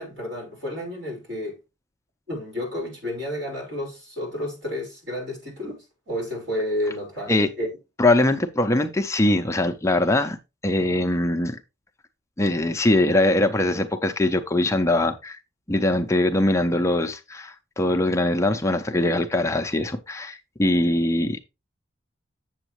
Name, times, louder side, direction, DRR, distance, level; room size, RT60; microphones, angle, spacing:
voice 1, 0.0-1.6 2.3-7.7, left 1 dB, 65° right, 4.8 m, -31 dB
voice 2, 8.0-10.4 10.6-11.6 12.4-15.4 15.7-21.4, left 1 dB, 15° left, 0.5 m, -22 dB
7.9 x 7.1 x 3.0 m
head